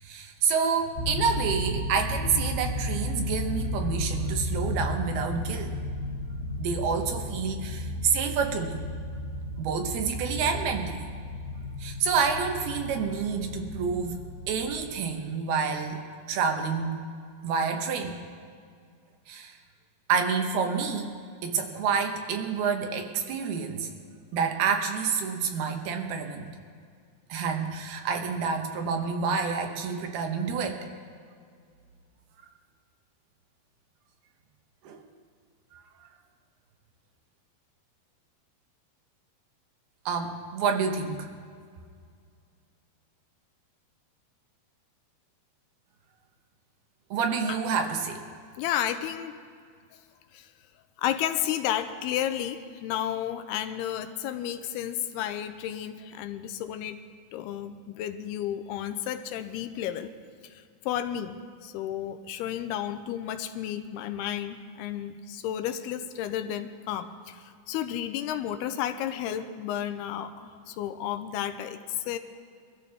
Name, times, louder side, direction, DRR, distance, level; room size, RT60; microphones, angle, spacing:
voice 1, 0.0-5.8 6.6-8.8 9.6-11.1 11.8-14.2 14.5-16.0 16.3-17.0 17.4-18.2 19.3-19.6 20.1-21.1 21.4-23.9 24.3-26.5 27.3-30.8 34.8-35.0 40.1-41.3 47.1-48.2, right 6 dB, 80° right, 4 dB, 3.1 m, -28 dB
sound 1, 1.0-14.7, left 1 dB, 70° left, 4.1 m, -33 dB
voice 2, 48.6-49.3 50.3-50.5 51.0-57.0 57.3-60.1 60.4-72.2, left 10 dB, 90° left, 9 dB, 2.6 m, -32 dB
23.0 x 13.5 x 3.5 m, 2.1 s
omnidirectional pair, 4.5 m